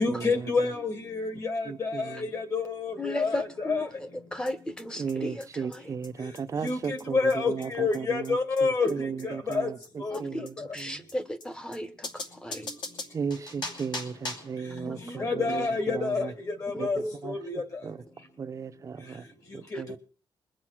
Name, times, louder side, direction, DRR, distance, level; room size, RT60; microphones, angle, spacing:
voice 1, 0.0-2.0 2.3-3.4 3.7-3.9 6.6-8.9 9.5-9.7 10.0-10.2 15.2-16.3 16.6-17.0 17.2-17.6, left 4 dB, 40° left, 2.4 m, -28 dB
voice 2, 1.7-2.2 5.0-7.2 7.5-8.4 8.9-9.7 10.2-11.0 13.1-16.3 16.8-16.9 17.2-17.4 17.8-18.0 18.4-19.2 19.5-20.0, right 6 dB, 35° right, 0.8 m, -35 dB
voice 3, 3.0-3.9 4.3-5.9 8.8-8.9 10.1-10.5 10.7-12.7 14.9-15.3 16.7-17.2 19.7-20.0, left 1 dB, 10° left, 1.1 m, -36 dB
sound 1, 4.5-4.6 4.8-4.9 5.1-5.2 5.4-5.5 5.7-5.8 6.0-6.1 6.3-6.4 6.7-6.8 7.0-7.1 7.3-7.4 7.6-7.7 7.9-8.0 8.2-8.3 8.6-8.7 8.9-9.0 9.2-9.3 9.5-9.6 9.8-9.9 10.1-10.2 10.5-10.6 10.8-10.9 11.1-11.2 11.4-11.5 11.7-11.8 12.0-14.6, left 2 dB, 60° left, 2.7 m, -39 dB
22.0 x 7.8 x 6.1 m
wide cardioid pair, 155°, 9 cm